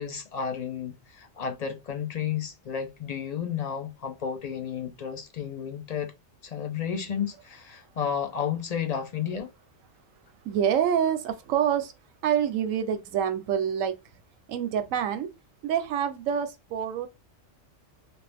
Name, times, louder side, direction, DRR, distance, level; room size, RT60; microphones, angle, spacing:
voice 1, 0.0-6.1 6.4-9.5, left 8 dB, 50° left, 0.5 m, -32 dB
voice 2, 10.4-11.9 12.2-14.0 14.5-15.3 15.6-17.1, right 9 dB, 85° right, 1.0 m, -26 dB
2.8 x 2.6 x 3.3 m
omnidirectional pair, 1.3 m